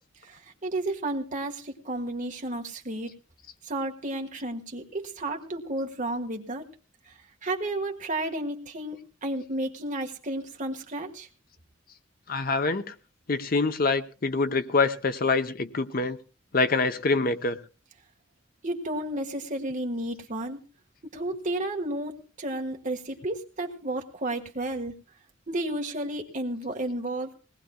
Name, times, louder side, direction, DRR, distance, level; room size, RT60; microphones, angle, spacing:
voice 1, 0.2-3.1 3.6-6.7 7.4-11.3 18.6-20.6 21.1-24.9 25.5-27.3, right 1 dB, 40° right, 1.5 m, -32 dB
voice 2, 12.3-12.9 13.3-16.2 16.5-17.6, left 3 dB, 45° left, 0.7 m, -25 dB
20.0 x 18.5 x 2.3 m
head